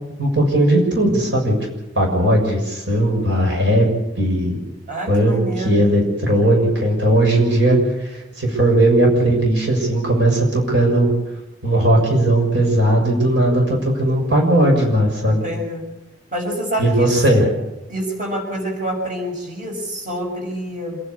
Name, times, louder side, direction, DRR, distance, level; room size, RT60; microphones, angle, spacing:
voice 1, 0.2-1.5 1.9-3.9 4.2-4.6 5.1-11.1 11.6-15.4 16.8-17.5, right 1 dB, 70° right, 0 dB, 6.6 m, -17 dB
voice 2, 4.9-5.8 15.3-15.8 16.3-17.1 17.9-21.0, right 1 dB, 45° right, 0 dB, 6.8 m, -27 dB
27.0 x 11.5 x 9.8 m, 0.94 s
head